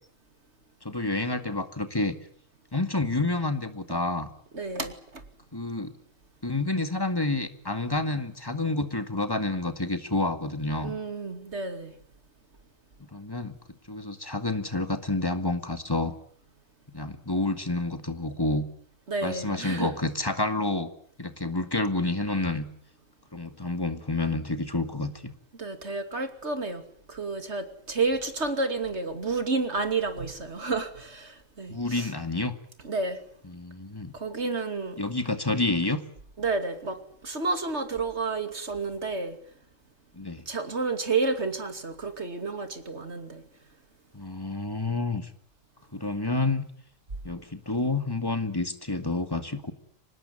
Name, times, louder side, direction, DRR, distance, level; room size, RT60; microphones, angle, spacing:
voice 1, 0.8-2.2 2.7-4.3 5.5-5.9 6.4-10.9 13.0-13.6 13.9-16.1 16.9-18.6 19.2-20.9 21.2-22.7 23.3-25.3 31.7-32.5 33.5-34.2 35.0-36.0 40.1-40.4 44.1-45.3 45.9-46.6 47.2-49.7, left 2 dB, 15° left, 9 dB, 2.1 m, -29 dB
voice 2, 4.5-5.2 10.8-11.9 19.1-19.9 25.6-26.8 27.1-32.1 32.8-33.2 34.1-35.0 36.4-39.4 40.5-43.4, right 3 dB, 60° right, 8 dB, 3.0 m, -30 dB
25.0 x 20.0 x 10.0 m, 0.64 s
omnidirectional pair, 1.3 m